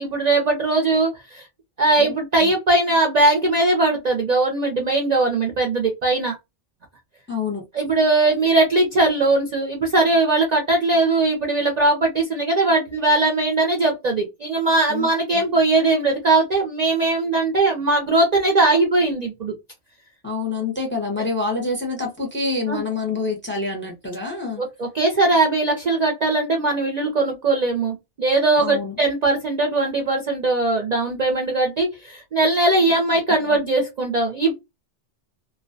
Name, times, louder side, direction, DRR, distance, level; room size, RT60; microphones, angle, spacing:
voice 1, 0.0-1.5 1.8-6.3 7.7-19.5 22.7-22.8 24.6-34.5, right 2 dB, 50° right, 0.5 m, -20 dB
voice 2, 7.3-7.6 14.9-15.1 15.3-15.4 20.2-24.6 28.6-29.0 33.5-33.6, left 3 dB, 15° left, 0.6 m, -27 dB
2.3 x 2.1 x 2.5 m
omnidirectional pair, 1.2 m